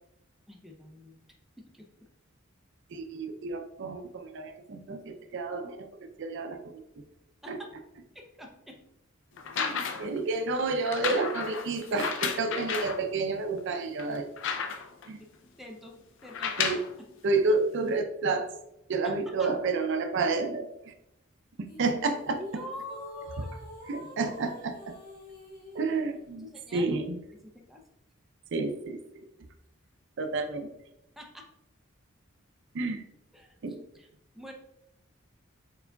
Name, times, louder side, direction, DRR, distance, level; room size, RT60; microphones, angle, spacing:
voice 1, 0.5-1.2 1.6-1.9 7.4-7.7 8.1-8.8 15.0-15.1 15.6-16.0 16.2-16.7 19.0-19.5 22.4-23.5 26.4-27.0 27.4-27.8 31.2-31.5 33.3-34.1 34.3-34.5, left 1 dB, ahead, 1 dB, 0.5 m, -45 dB
voice 2, 2.9-5.8 6.2-6.8 7.5-7.6 9.5-14.4 15.1-15.2 16.6-16.8 17.2-18.5 18.9-20.9 21.8-22.4 23.9-24.9 25.7-26.5 26.7-27.2 28.5-29.2 30.2-30.7 32.7-33.0 33.6-33.8, right 3 dB, 65° right, 6 dB, 0.4 m, -30 dB
sound 1, 9.4-10.2 10.9-13.0 13.6-13.7 14.0-15.1 16.2-16.9 17.9-18.0, left 6 dB, 65° left, 0.4 m, -32 dB
sound 2, 21.7-26.2, left 1 dB, 45° left, 1.3 m, -48 dB
4.7 x 3.8 x 2.2 m, 0.83 s
head